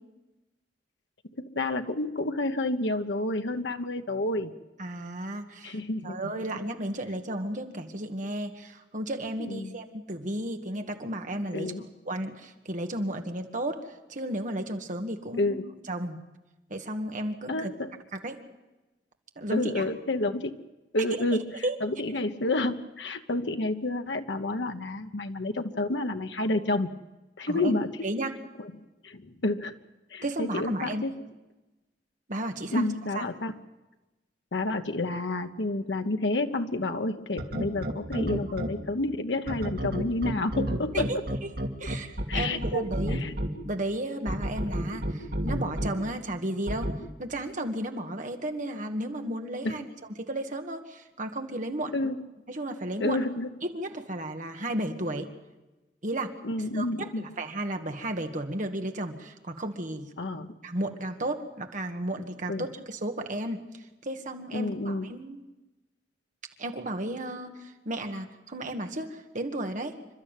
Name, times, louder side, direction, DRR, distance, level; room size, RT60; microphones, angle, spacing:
voice 1, 1.4-4.5 5.6-6.4 9.4-9.7 11.5-11.8 15.4-15.7 17.5-17.9 19.5-20.6 20.9-21.4 21.8-26.9 27.4-27.9 28.6-28.7 29.0-29.7 30.1-31.2 32.7-33.5 34.5-41.2 42.3-42.8 43.1-43.3 49.6-49.8 51.9-52.2 53.0-53.5 56.4-57.2 60.2-60.5 62.5-62.7 64.5-65.1, left 2 dB, 85° left, 6 dB, 1.1 m, -29 dB
voice 2, 4.8-11.7 12.1-13.8 14.1-15.6 15.9-16.2 16.7-17.7 18.1-18.4 19.4-19.8 21.6-21.7 27.5-28.3 30.2-31.0 32.3-32.9 33.1-33.3 40.9-41.2 41.8-43.2 43.6-46.9 47.2-49.9 50.2-51.9 52.5-53.2 53.6-55.3 56.0-56.3 56.7-60.1 60.6-65.4 66.6-69.9, right 1 dB, 45° right, 5 dB, 2.1 m, -33 dB
sound 1, 37.4-38.7 39.5-43.5 44.3-45.9 46.7-46.9, equal, 60° right, 2.6 m, -29 dB
28.0 x 12.5 x 9.2 m, 1.1 s
head